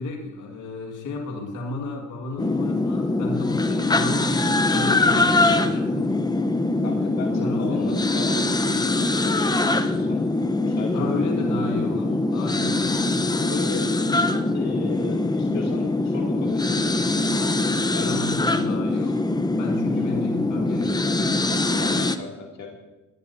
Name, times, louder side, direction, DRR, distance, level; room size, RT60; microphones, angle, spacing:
voice 1, 0.0-6.2 7.3-8.4 10.9-13.0 18.0-21.3, left 2 dB, 85° left, 2 dB, 2.0 m, -33 dB
sound 1, 2.4-22.2, left 2 dB, 15° left, 0.8 m, -23 dB
voice 2, 6.8-10.2 10.6-11.5 13.5-14.1 14.5-17.3 17.9-18.1 19.0-19.1 21.8-22.8, left 4 dB, 60° left, -1 dB, 2.6 m, -37 dB
21.5 x 17.5 x 2.7 m, 1.1 s
cardioid pair, 90°, 30 cm